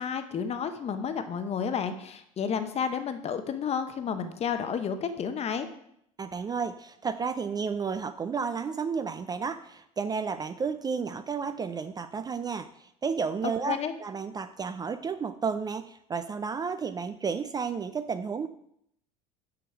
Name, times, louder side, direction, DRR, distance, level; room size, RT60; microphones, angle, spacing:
voice 1, 0.0-5.7 13.6-13.9, left 7 dB, 35° left, 9 dB, 0.8 m, -31 dB
voice 2, 6.2-18.5, right 5 dB, 20° right, 11 dB, 0.4 m, -32 dB
6.1 x 6.0 x 4.7 m, 0.73 s
hypercardioid pair, 75°, 18 cm